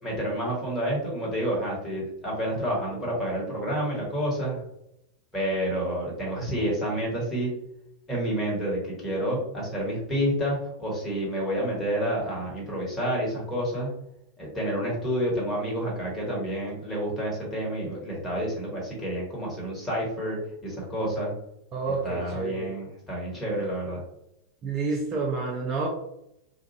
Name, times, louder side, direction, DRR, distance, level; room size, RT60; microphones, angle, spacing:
voice 1, 0.0-4.6 5.3-7.5 8.1-13.9 14.4-21.3 22.0-24.0, equal, 15° left, -4 dB, 1.3 m, -29 dB
voice 2, 21.7-22.7 24.6-25.9, right 4 dB, 30° right, 0 dB, 0.5 m, -29 dB
2.4 x 2.2 x 2.9 m, 0.80 s
figure-of-eight pair, 90°, 0 cm